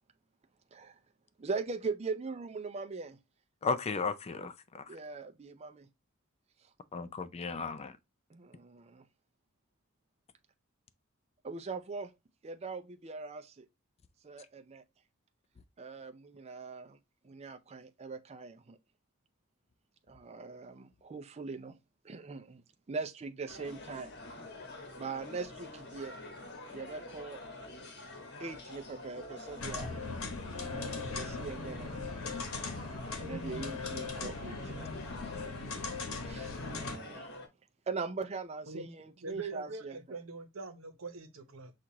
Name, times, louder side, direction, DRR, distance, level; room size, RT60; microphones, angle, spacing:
voice 1, 1.4-3.2 4.9-5.9 8.3-9.0 11.4-12.1 12.4-13.7 14.2-14.8 15.8-17.0 17.2-18.8 20.1-21.7 22.0-22.6 22.9-24.1 25.0-26.1 26.7-27.4 28.4-29.9 30.6-32.1 33.2-34.9 36.2-37.3 37.9-40.0, right 4 dB, 30° right, 0.5 m, -41 dB
voice 2, 3.6-4.8 6.9-7.9, left 4 dB, 30° left, 0.4 m, -35 dB
sound 1, 23.5-37.5, left 2 dB, 55° left, 1.3 m, -47 dB
sound 2, 29.6-37.0, left 3 dB, 80° left, 1.0 m, -39 dB
voice 3, 39.2-41.7, right 4 dB, 75° right, 0.9 m, -43 dB
6.1 x 2.5 x 2.7 m
head